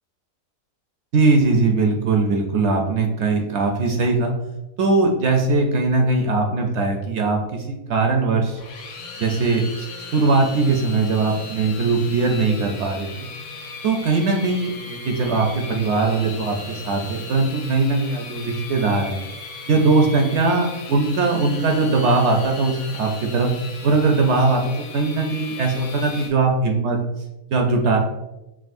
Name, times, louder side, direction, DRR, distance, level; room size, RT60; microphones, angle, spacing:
voice 1, 1.1-4.3 4.8-8.6 9.2-9.9 10.1-13.3 13.8-19.2 19.7-23.5 23.8-27.0 27.5-28.0, right 3 dB, 65° right, 2 dB, 0.7 m, -20 dB
sound 1, 8.5-26.3, left 4 dB, 70° left, 1.0 m, -37 dB
5.9 x 2.5 x 2.5 m, 0.95 s
omnidirectional pair, 1.4 m